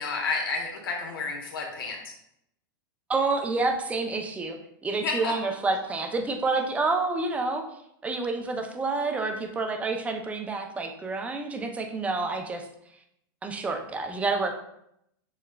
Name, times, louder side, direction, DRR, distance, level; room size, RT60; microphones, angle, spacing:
voice 1, 0.0-2.1 5.0-5.3, left 4 dB, 85° left, 0 dB, 1.1 m, -31 dB
voice 2, 3.1-7.6 8.0-12.7 13.4-14.6, right 3 dB, 10° right, 4 dB, 0.4 m, -28 dB
6.6 x 2.2 x 2.2 m, 0.77 s
supercardioid pair, 130°, 11 cm